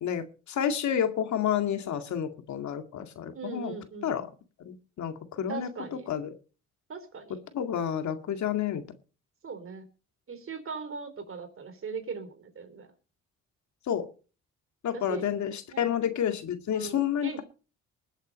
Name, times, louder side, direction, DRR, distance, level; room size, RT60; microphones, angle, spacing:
voice 1, 0.0-3.7 4.0-4.3 4.7-6.3 7.5-8.8 13.9-14.1 14.8-17.3, left 9 dB, 70° left, 7 dB, 2.2 m, -30 dB
voice 2, 3.3-4.1 5.5-6.1 6.9-7.4 9.4-9.9 10.3-12.9 14.9-15.3 15.7-15.9 16.7-17.4, right 5 dB, 45° right, 9 dB, 3.8 m, -39 dB
20.5 x 8.1 x 5.2 m, 0.37 s
cardioid pair, 90°, 30 cm